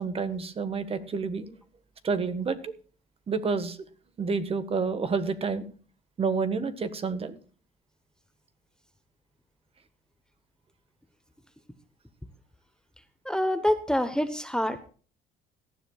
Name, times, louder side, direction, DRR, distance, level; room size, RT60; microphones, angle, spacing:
voice 1, 0.0-1.5 2.0-2.7 3.3-3.8 4.2-5.7 6.2-7.4, right 4 dB, 35° right, 10 dB, 1.5 m, -29 dB
voice 2, 13.2-14.9, left 1 dB, 5° left, 9 dB, 1.0 m, -26 dB
18.0 x 13.0 x 2.4 m, 0.40 s
cardioid pair, 110°, 17 cm